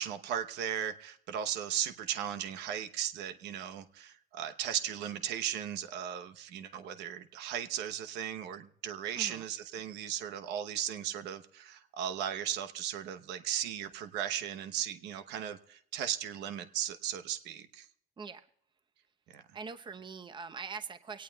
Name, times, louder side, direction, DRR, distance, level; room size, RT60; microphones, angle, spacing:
voice 1, 0.0-17.9 19.3-19.4, right 10 dB, 85° right, 9 dB, 1.0 m, -36 dB
voice 2, 18.2-18.5 19.5-21.2, right 5 dB, 30° right, 9 dB, 0.9 m, -43 dB
24.0 x 18.0 x 2.3 m, 0.65 s
cardioid pair, 110°, 17 cm